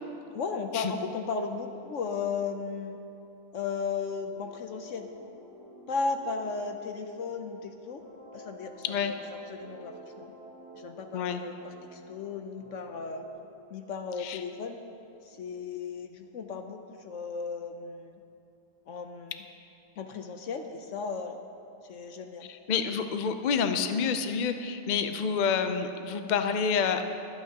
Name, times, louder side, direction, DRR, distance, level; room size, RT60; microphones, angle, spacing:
voice 1, 0.3-3.0 3.5-5.1 5.9-8.0 8.3-9.2 9.5-10.3 10.7-13.3 13.7-14.8 15.2-18.2 18.9-19.4 20.0-21.4 21.8-22.5 22.9-23.0 23.2-23.4, left 5 dB, 65° left, 6 dB, 0.9 m, -35 dB
sound 1, 4.2-13.3, equal, 10° right, 3.2 m, -51 dB
voice 2, 22.5-27.0, left 6 dB, 85° left, 8 dB, 0.4 m, -28 dB
22.0 x 8.9 x 2.8 m, 2.9 s
omnidirectional pair, 1.6 m